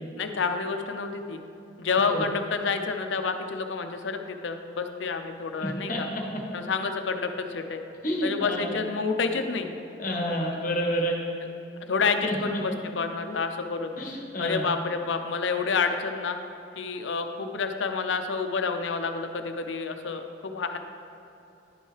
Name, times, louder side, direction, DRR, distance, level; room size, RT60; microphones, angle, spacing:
voice 1, 0.2-1.4 1.8-6.1 6.5-7.8 8.2-9.7 11.9-13.9 14.4-16.4 16.8-20.8, left 4 dB, 85° left, 6 dB, 0.6 m, -29 dB
voice 2, 5.6-6.0 6.3-6.4 8.0-8.7 10.0-11.2 12.2-12.6 14.0-14.7, equal, 45° left, 1 dB, 1.0 m, -29 dB
10.5 x 5.4 x 3.3 m, 2.9 s
head